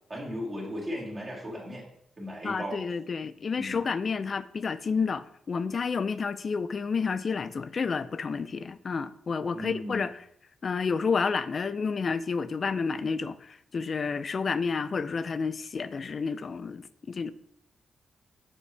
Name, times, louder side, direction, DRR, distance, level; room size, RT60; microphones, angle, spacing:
voice 1, 0.1-1.8 2.2-2.8 3.5-3.8 9.5-10.0, equal, 25° right, 2.1 m, -36 dB
voice 2, 2.4-10.2 10.6-17.3, left 5 dB, 45° left, 0.3 m, -30 dB
6.9 x 4.6 x 3.3 m
cardioid pair, 110°, 0 cm